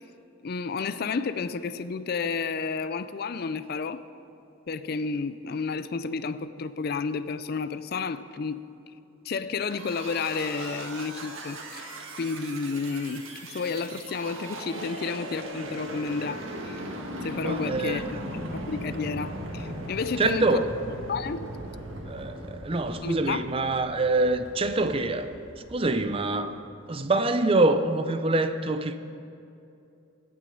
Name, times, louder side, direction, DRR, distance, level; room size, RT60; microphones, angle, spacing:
voice 1, 0.4-4.0 4.7-8.6 9.2-16.9 17.2-20.7 21.1-21.5 23.0-23.4, left 4 dB, 50° left, 0.4 m, -31 dB
sound 1, 9.7-26.3, right 1 dB, 80° right, 1.6 m, -38 dB
voice 2, 17.4-18.1 20.2-20.6 22.1-25.3 25.7-26.6 26.9-29.0, right 2 dB, 25° right, 0.5 m, -25 dB
16.5 x 6.2 x 7.9 m
head